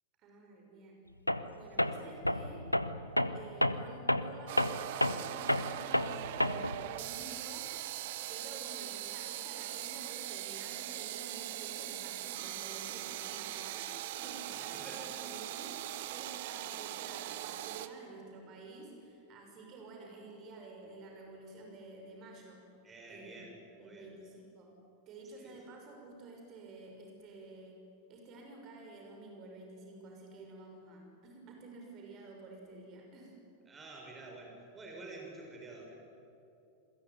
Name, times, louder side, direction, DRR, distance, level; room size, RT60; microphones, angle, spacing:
voice 1, 0.2-1.1 1.5-2.7 3.3-7.8 8.3-22.6 23.1-23.4 23.8-24.8 25.1-27.8 28.1-33.4, right 3 dB, 35° right, 1 dB, 6.3 m, -51 dB
Tools, 1.3-1.5 1.8-6.8, left 1 dB, 90° left, 0.9 m, -31 dB
sound 1, 4.5-17.9, right 13 dB, 50° right, 1.4 m, -41 dB
voice 2, 14.7-15.2 22.8-24.1 25.4-25.6 33.7-36.0, right 2 dB, 15° right, 0 dB, 6.4 m, -49 dB
28.0 x 22.0 x 9.5 m, 2.8 s
figure-of-eight pair, 90°, 0 cm